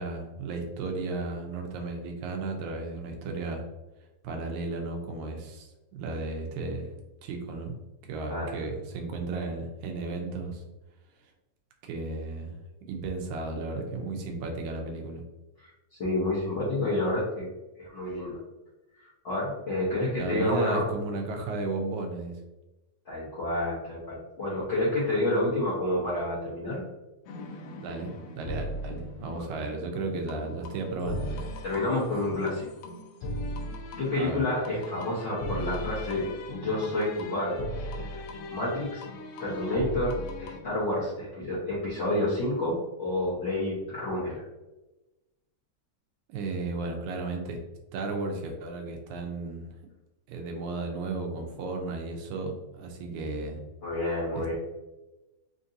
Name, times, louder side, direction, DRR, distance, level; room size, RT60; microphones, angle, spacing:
voice 1, 0.0-3.6 4.2-6.9 7.2-7.7 8.1-10.6 11.8-12.6 12.9-15.2 20.2-22.3 27.8-31.4 34.2-34.4 46.3-47.6 47.9-49.8 50.3-53.6 54.3-54.5, right 3 dB, 80° right, 2 dB, 2.1 m, -34 dB
voice 2, 16.0-17.5 17.8-18.4 19.2-20.9 23.0-26.8 29.3-29.5 31.6-32.7 34.0-37.6 38.5-39.0 39.4-44.4 53.8-54.5, left 1 dB, 65° left, -9 dB, 1.1 m, -29 dB
sound 1, 27.3-40.6, equal, 85° left, 1.4 m, -38 dB
5.1 x 2.6 x 2.6 m, 1.0 s
omnidirectional pair, 3.5 m